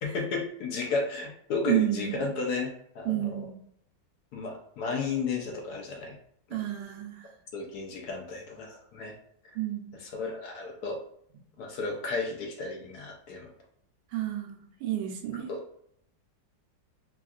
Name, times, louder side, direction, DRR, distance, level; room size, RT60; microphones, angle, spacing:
voice 1, 0.0-3.5 4.3-6.1 7.5-9.1 10.0-11.0 11.6-13.5 15.5-15.6, left 4 dB, 70° left, 1 dB, 1.0 m, -33 dB
voice 2, 1.7-2.2 3.0-3.6 6.5-7.3 9.5-10.0 14.1-15.5, right 13 dB, 90° right, 2 dB, 1.3 m, -30 dB
3.5 x 2.3 x 2.3 m, 0.70 s
omnidirectional pair, 2.0 m